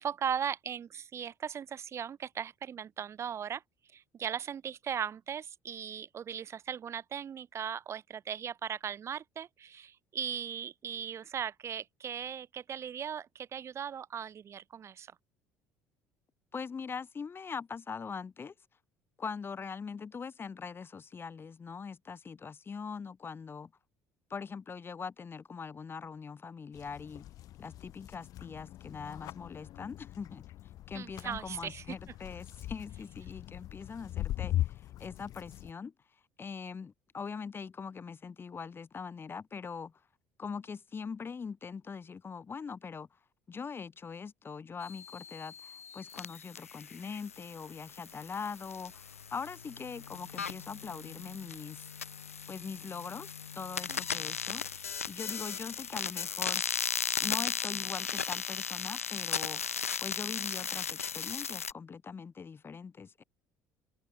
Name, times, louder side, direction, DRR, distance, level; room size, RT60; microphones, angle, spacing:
voice 1, 0.0-3.6 3.9-15.1 30.9-32.0 53.9-54.2, right 8 dB, 40° right, 1.2 m, -38 dB
voice 2, 16.5-18.5 19.2-23.7 24.3-27.2 27.6-30.4 30.9-35.9 36.4-39.9 40.4-43.1 43.5-51.9 52.5-54.6 55.1-56.6 57.2-59.6 60.0-63.2, left 5 dB, 30° left, 4.4 m, -42 dB
sound 1, 26.7-35.7, left 14 dB, 55° left, 2.4 m, -40 dB
sound 2, 44.8-61.7, left 7 dB, 85° left, 1.1 m, -37 dB
figure-of-eight pair, 55°, 7 cm